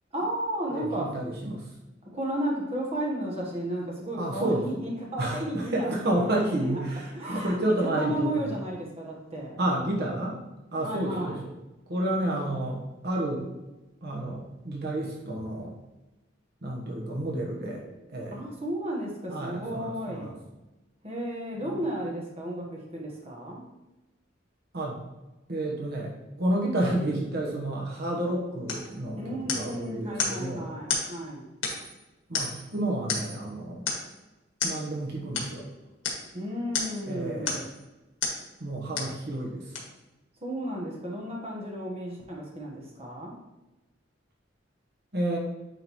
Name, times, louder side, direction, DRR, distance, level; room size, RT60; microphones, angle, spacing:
voice 1, 0.1-1.2 2.1-6.8 7.1-9.6 10.8-11.4 18.3-20.3 21.0-23.6 29.2-31.5 36.3-37.6 40.4-43.4, right 1 dB, 35° right, -2 dB, 1.3 m, -33 dB
voice 2, 0.7-1.6 4.2-4.6 5.2-8.5 9.6-10.4 10.7-11.5 11.9-13.5 14.0-15.7 16.6-17.8 18.1-18.4 19.3-20.3 21.6-21.8 24.7-25.0 25.5-30.7 32.3-33.9 34.6-35.7 37.1-37.7 38.6-39.8 45.1-45.4, right 1 dB, 55° right, -2 dB, 1.1 m, -30 dB
sound 1, 28.7-28.9 29.5-29.8 30.2-30.4 30.9-31.1 31.6-32.0 32.3-32.7 33.1-33.4 33.9-34.1 34.6-34.8 35.3-35.5 36.0-36.2 36.7-37.0 37.4-37.7 38.2-38.4 38.9-39.2 39.7-39.8, left 4 dB, 80° left, 1.6 m, -31 dB
9.2 x 3.8 x 3.1 m, 1.1 s
head